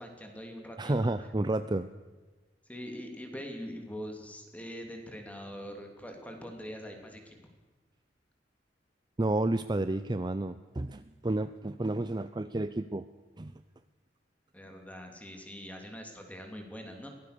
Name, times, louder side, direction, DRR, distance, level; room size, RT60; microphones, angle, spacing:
voice 1, 0.0-0.9 2.7-7.4 14.5-17.1, equal, 10° left, 3 dB, 3.0 m, -43 dB
voice 2, 0.8-1.9 9.2-13.1 13.4-13.5, right 2 dB, 25° right, 11 dB, 0.5 m, -31 dB
22.5 x 17.5 x 6.8 m, 1.3 s
head